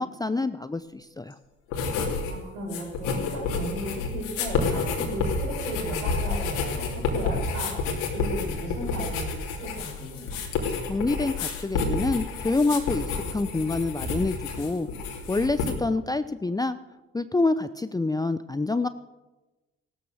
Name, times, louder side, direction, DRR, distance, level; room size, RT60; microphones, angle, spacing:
voice 1, 0.0-1.4 10.9-14.9 15.3-16.8 17.1-18.9, left 3 dB, 10° left, 12 dB, 0.6 m, -27 dB
sound 1, 1.7-2.3 2.6-15.7, left 4 dB, 80° left, 2.8 m, -29 dB
voice 2, 2.3-7.7 8.1-9.3 9.6-10.4, right 1 dB, 85° right, -3 dB, 7.4 m, -35 dB
16.5 x 12.5 x 6.4 m, 1.1 s
hypercardioid pair, 50°, 32 cm